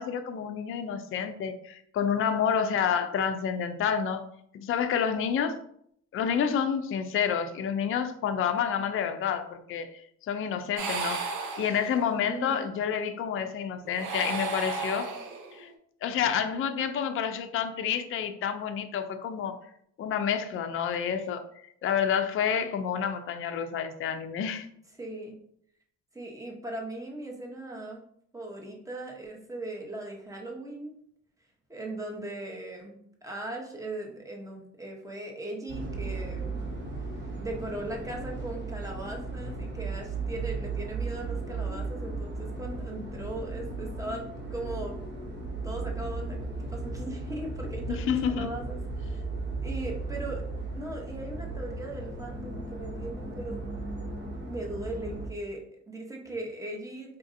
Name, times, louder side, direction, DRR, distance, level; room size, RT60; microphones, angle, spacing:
voice 1, 0.0-4.3 4.5-5.6 6.1-10.0 10.3-11.2 11.6-15.1 15.5-15.7 16.0-19.6 20.0-21.5 21.8-24.7 47.9-48.5, left 7 dB, 45° left, 0.4 m, -29 dB
sound 1, 10.8-12.2 13.9-15.7, right 4 dB, 75° right, 0.7 m, -34 dB
voice 2, 12.3-12.7 25.0-25.3 26.1-28.0 28.3-30.9 31.7-36.6 37.4-44.2 44.5-44.9 45.6-49.2 49.6-50.4 50.7-53.6 54.4-57.2, right 2 dB, 10° right, 0.8 m, -38 dB
sound 2, 35.7-55.3, right 3 dB, 35° right, 0.9 m, -36 dB
4.1 x 2.5 x 2.5 m
cardioid pair, 90°, 30 cm